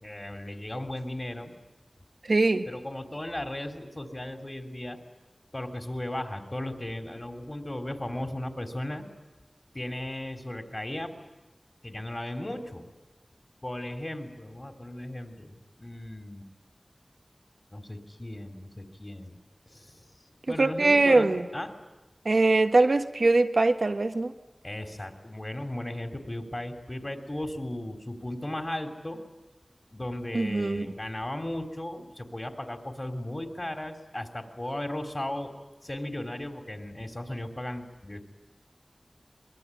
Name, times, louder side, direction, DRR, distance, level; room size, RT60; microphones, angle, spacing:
voice 1, 0.0-1.6 2.6-5.0 5.5-9.1 9.7-11.1 11.8-12.9 13.6-16.5 17.7-19.4 19.7-20.0 20.5-21.7 24.6-29.2 29.9-35.5 35.8-38.2, left 1 dB, 35° left, 3.2 m, -36 dB
voice 2, 2.2-2.7 20.6-21.5 22.2-24.3 30.3-30.9, right 2 dB, 85° right, 1.3 m, -22 dB
25.0 x 21.5 x 9.8 m
wide cardioid pair, 45°, 0 cm